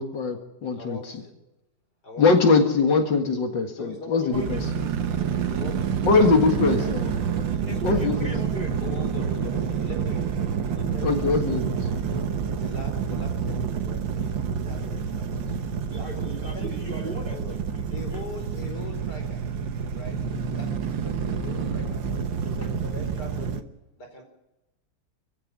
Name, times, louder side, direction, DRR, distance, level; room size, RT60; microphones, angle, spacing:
voice 1, 0.0-1.0 2.2-4.6 6.0-7.2 7.8-8.3 11.0-11.8, left 4 dB, 75° left, 5 dB, 2.5 m, -22 dB
voice 2, 0.8-1.3 2.0-2.3 3.8-4.4 5.5-6.1 6.7-7.0 7.5-8.1 8.8-11.3 12.4-14.3 14.6-15.4 16.0-17.6 17.9-19.4 19.9-22.0 22.4-23.7 24.0-24.2, left 2 dB, 60° left, 3 dB, 4.9 m, -41 dB
voice 3, 4.2-5.4 7.6-9.3 15.9-18.2, equal, 30° right, 4 dB, 3.0 m, -39 dB
sound 1, 4.3-23.6, right 7 dB, 85° right, 1.9 m, -28 dB
25.5 x 15.5 x 7.4 m, 1.0 s
omnidirectional pair, 2.0 m